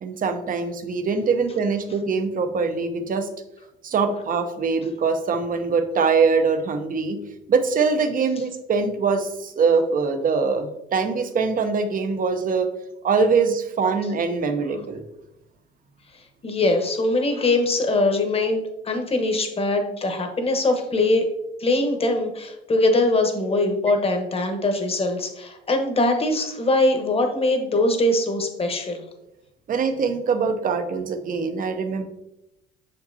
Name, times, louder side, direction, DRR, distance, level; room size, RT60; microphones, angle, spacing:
voice 1, 0.0-3.3 3.8-7.2 7.5-12.7 13.0-15.0 29.7-32.0, right 5 dB, 45° right, 8 dB, 0.8 m, -23 dB
voice 2, 16.4-21.2 21.6-29.0, left 2 dB, 30° left, 5 dB, 1.1 m, -22 dB
6.5 x 5.4 x 2.7 m, 0.87 s
cardioid pair, 100°, 20 cm